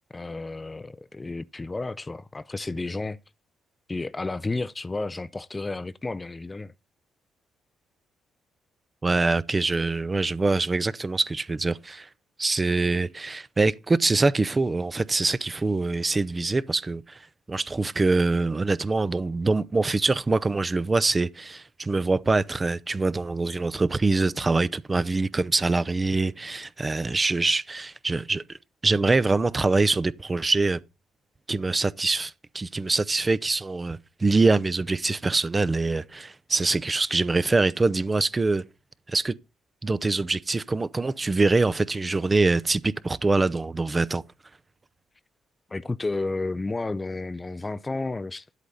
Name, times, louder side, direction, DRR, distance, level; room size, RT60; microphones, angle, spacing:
voice 1, 0.1-3.2 3.9-6.7 45.7-48.5, left 3 dB, 20° left, 0.5 m, -32 dB
voice 2, 9.0-12.1 12.4-17.2 17.5-28.6 28.8-30.8 31.5-38.6 39.1-39.3 39.8-44.2, right 3 dB, 25° right, 0.6 m, -24 dB
11.0 x 8.2 x 4.1 m
cardioid pair, 90°, 0 cm